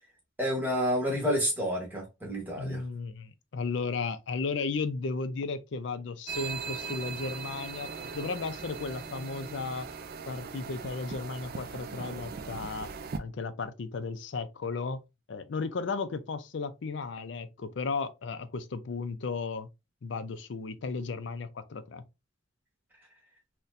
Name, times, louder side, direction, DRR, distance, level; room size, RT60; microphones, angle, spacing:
voice 1, 0.4-2.8, equal, 10° right, 1.1 m, -29 dB
voice 2, 2.6-7.9 8.1-9.9 10.3-12.9 13.2-15.0 15.3-19.7 20.0-22.0, left 4 dB, 65° left, 0.4 m, -34 dB
sound 1, 6.3-13.2, right 5 dB, 45° right, 0.3 m, -39 dB
4.1 x 2.2 x 2.5 m
head